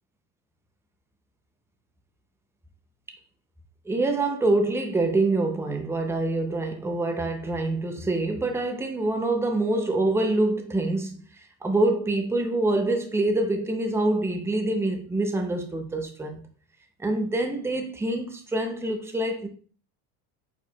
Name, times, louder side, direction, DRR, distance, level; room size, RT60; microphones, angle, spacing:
voice 1, 3.9-16.4 17.0-19.5, right 2 dB, 5° right, 0.5 m, -25 dB
4.8 x 4.3 x 2.3 m
supercardioid pair, 120°, 50 cm